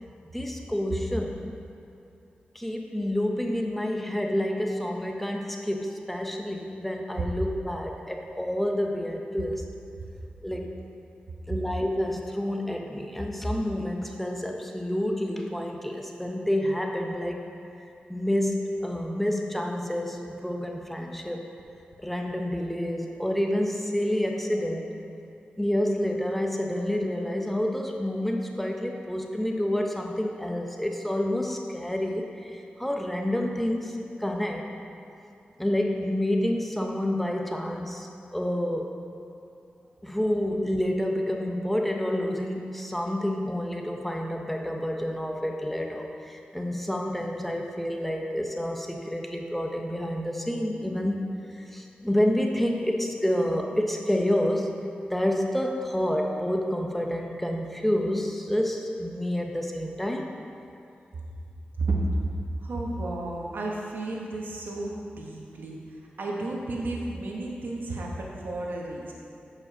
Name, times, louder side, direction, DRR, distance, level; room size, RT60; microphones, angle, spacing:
voice 1, 0.3-1.5 2.5-9.6 10.4-10.7 11.5-17.5 18.1-21.5 22.0-24.9 25.6-34.7 35.6-38.9 40.0-54.8 55.1-60.3, left 1 dB, 5° left, 2 dB, 0.9 m, -28 dB
voice 2, 61.8-62.3 62.6-65.8 66.2-69.1, right 2 dB, 75° right, -2 dB, 1.3 m, -32 dB
7.1 x 5.3 x 6.0 m, 2.7 s
cardioid pair, 60°, 3 cm